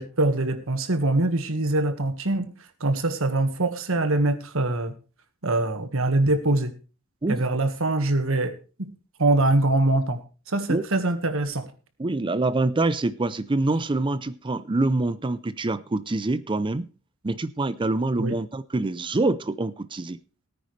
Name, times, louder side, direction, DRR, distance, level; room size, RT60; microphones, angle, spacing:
voice 1, 0.0-2.5 2.8-4.9 5.4-6.7 7.3-8.5 8.8-8.9 9.2-10.2 10.5-11.7 18.2-18.4, right 2 dB, 70° right, 9 dB, 1.6 m, -23 dB
voice 2, 12.0-16.9 17.2-20.2, right 2 dB, 25° right, 15 dB, 0.5 m, -25 dB
18.0 x 9.4 x 3.3 m, 0.35 s
head